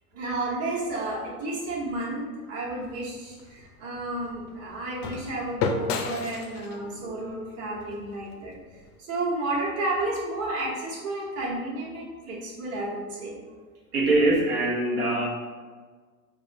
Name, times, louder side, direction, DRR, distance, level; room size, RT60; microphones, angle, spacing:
voice 1, 0.1-8.6 9.0-13.4, right 2 dB, 35° right, -5 dB, 1.1 m, -31 dB
sound 1, 2.8-8.9, left 4 dB, 45° left, 0.4 m, -35 dB
voice 2, 13.9-15.3, right 2 dB, 75° right, -4 dB, 1.0 m, -23 dB
4.7 x 2.3 x 2.6 m, 1.5 s
hypercardioid pair, 115°, 44 cm